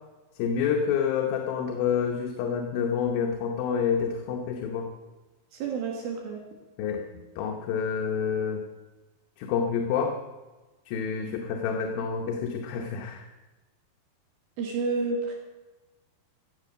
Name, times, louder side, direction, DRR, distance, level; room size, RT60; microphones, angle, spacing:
voice 1, 0.4-4.9 6.8-7.0 7.4-8.6 9.4-10.2 10.9-13.3, left 7 dB, 75° left, 2 dB, 2.8 m, -28 dB
voice 2, 5.5-6.4 14.6-15.3, right 4 dB, 75° right, 0 dB, 3.3 m, -30 dB
16.0 x 7.4 x 6.6 m, 1.2 s
omnidirectional pair, 4.3 m